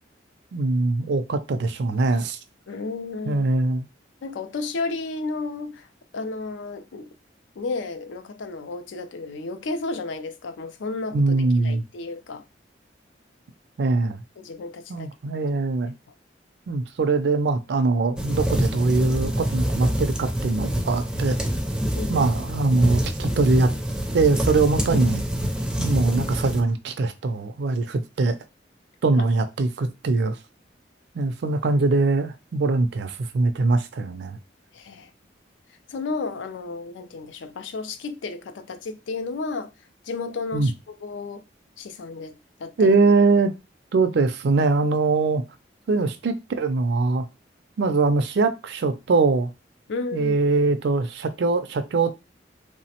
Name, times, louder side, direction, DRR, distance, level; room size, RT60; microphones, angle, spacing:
voice 1, 0.5-2.4 3.3-3.8 11.1-11.8 13.8-14.2 14.9-15.9 16.7-21.4 22.1-23.7 24.1-25.3 25.8-28.4 29.0-30.4 31.1-34.4 40.5-40.7 42.8-43.5 43.9-45.4 45.9-47.2 47.8-49.5 50.1-52.2, right 3 dB, 65° right, 0.4 m, -22 dB
voice 2, 2.7-3.5 4.2-5.9 6.1-7.1 7.6-12.4 14.4-15.1 21.9-22.2 34.7-35.1 35.9-39.7 40.0-41.4 41.8-42.9 45.9-46.1 49.9-50.4, left 3 dB, 80° left, 0.4 m, -32 dB
sound 1, 18.2-26.6, equal, 5° right, 0.4 m, -26 dB
3.2 x 2.0 x 2.8 m
head